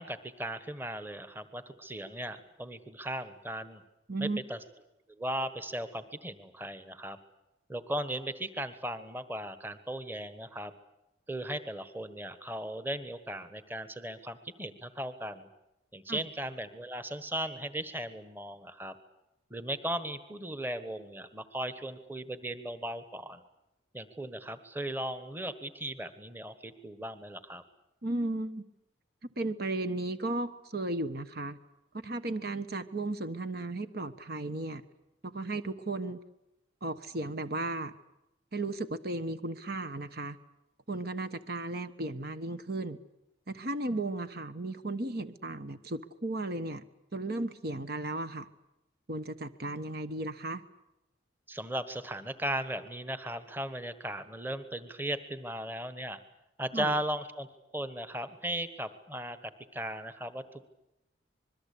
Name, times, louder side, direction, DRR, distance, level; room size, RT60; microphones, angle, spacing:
voice 1, 0.0-3.8 4.2-4.6 5.2-7.2 7.7-10.7 11.3-15.5 15.9-18.9 19.5-23.4 23.9-27.6 51.5-56.2 56.6-57.5 57.7-60.6, right 1 dB, 10° right, 11 dB, 1.4 m, -37 dB
voice 2, 4.1-4.4 16.1-16.2 28.0-28.7 29.4-31.6 31.9-34.8 35.2-36.2 36.8-37.9 38.5-40.4 40.9-43.0 43.5-46.8 47.1-48.5 49.1-50.6 56.7-56.9, right 2 dB, 55° right, 10 dB, 1.2 m, -35 dB
26.0 x 22.0 x 8.5 m, 0.90 s
head